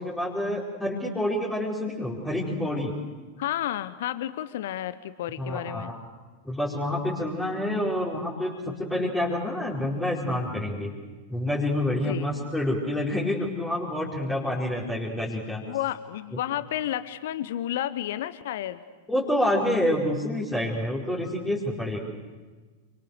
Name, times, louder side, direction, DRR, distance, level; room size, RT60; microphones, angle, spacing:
voice 1, 0.0-2.9 5.4-6.0 6.4-10.9 11.3-15.6 19.1-22.0, left 1 dB, 10° left, -5 dB, 4.8 m, -28 dB
voice 2, 3.4-5.9 8.9-9.1 11.9-12.3 15.7-18.8, left 12 dB, 55° left, 14 dB, 1.0 m, -31 dB
29.0 x 26.0 x 6.9 m, 1.4 s
figure-of-eight pair, 90°, 0 cm